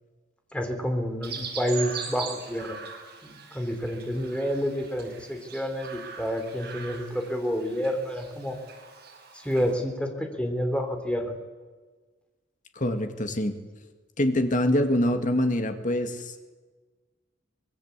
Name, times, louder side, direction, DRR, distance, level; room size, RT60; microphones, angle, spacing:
voice 1, 0.5-2.8 3.2-8.6 9.3-11.4, equal, 5° left, 5 dB, 3.5 m, -29 dB
Chirp tweet, 1.2-9.7, right 6 dB, 60° right, 6.8 m, -41 dB
voice 2, 12.8-13.6 14.2-16.3, left 1 dB, 45° left, 7 dB, 2.2 m, -25 dB
25.0 x 21.0 x 8.3 m, 1.4 s
head